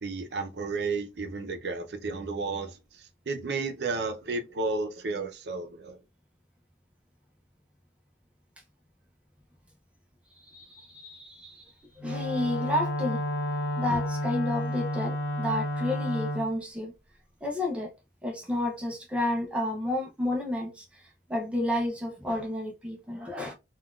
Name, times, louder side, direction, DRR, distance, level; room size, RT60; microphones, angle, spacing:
voice 1, 0.0-6.0, right 3 dB, 70° right, 0.6 m, -32 dB
voice 2, 10.4-11.7 12.0-13.2 13.8-16.9 17.4-17.9 18.2-23.5, left 1 dB, 5° right, 0.5 m, -31 dB
Wind instrument woodwind instrument, 12.0-16.5, left 1 dB, 85° left, 0.5 m, -31 dB
3.8 x 2.3 x 2.3 m
head